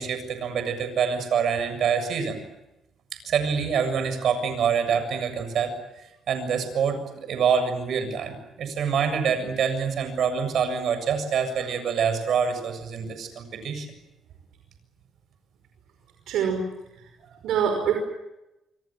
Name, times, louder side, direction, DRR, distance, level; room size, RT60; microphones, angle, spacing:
voice 1, 0.0-2.4 3.3-5.7 6.3-13.9, right 6 dB, 65° right, 9 dB, 7.4 m, -26 dB
voice 2, 16.3-16.7 17.4-17.9, right 7 dB, 85° right, 4 dB, 5.4 m, -24 dB
28.0 x 25.0 x 7.6 m, 0.93 s
cardioid pair, 90°, 0 cm